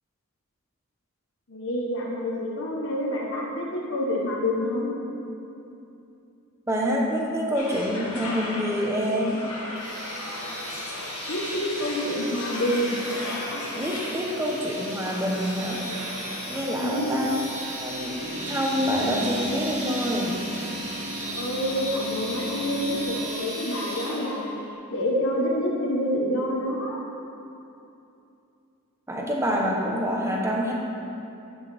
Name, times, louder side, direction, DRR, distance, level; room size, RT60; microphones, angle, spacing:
voice 1, 1.5-4.9 11.3-12.9 16.7-17.2 21.2-24.6 24.9-27.0, left 1 dB, 60° left, -2 dB, 1.0 m, -27 dB
voice 2, 6.7-9.4 13.7-15.8 16.5-17.4 17.8-18.2 18.5-20.4 29.1-30.7, equal, 10° right, -2 dB, 0.8 m, -26 dB
sound 1, 7.5-16.6, left 2 dB, 85° left, 1.2 m, -36 dB
sound 2, 9.8-24.5, right 1 dB, 30° right, 1.8 m, -36 dB
sound 3, 11.6-23.0, equal, 40° left, 1.6 m, -39 dB
10.0 x 6.2 x 3.4 m, 2.8 s
head